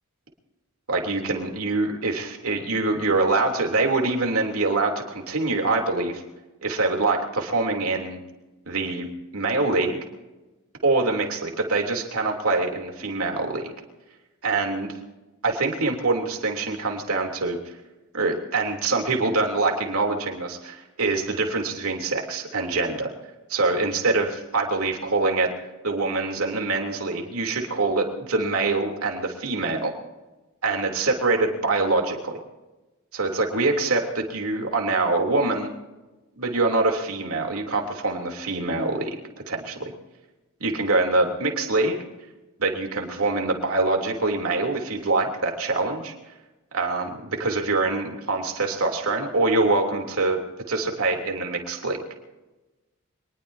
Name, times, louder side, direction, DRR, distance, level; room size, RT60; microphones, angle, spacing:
voice 1, 0.9-6.2 6.6-8.2 8.7-10.0 10.8-13.7 14.4-14.9 15.4-17.6 18.1-23.1 23.5-25.5 25.8-29.9 30.6-32.4 33.1-35.7 36.4-39.2 39.5-39.9 40.6-42.0 42.6-46.1 46.7-50.4 50.7-52.0, right 3 dB, 70° right, 2 dB, 3.3 m, -24 dB
25.5 x 20.0 x 2.8 m, 1.1 s
head